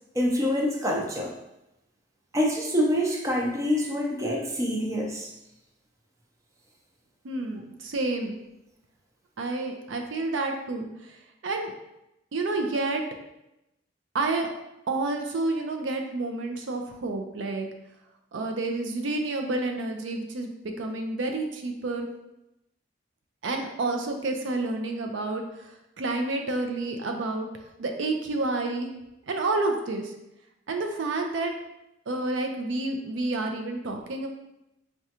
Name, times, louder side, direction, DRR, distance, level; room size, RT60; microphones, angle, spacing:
voice 1, 0.1-1.3 2.3-5.3, equal, 15° right, -1 dB, 0.5 m, -26 dB
voice 2, 7.2-8.4 9.4-10.9 11.4-11.7 12.3-13.0 14.1-14.5 14.9-17.7 18.3-22.1 23.4-25.7 26.0-27.5 27.8-28.9 29.3-30.1 30.7-31.5 32.1-34.3, right 2 dB, 85° right, 4 dB, 0.5 m, -29 dB
4.8 x 2.2 x 2.8 m, 0.88 s
head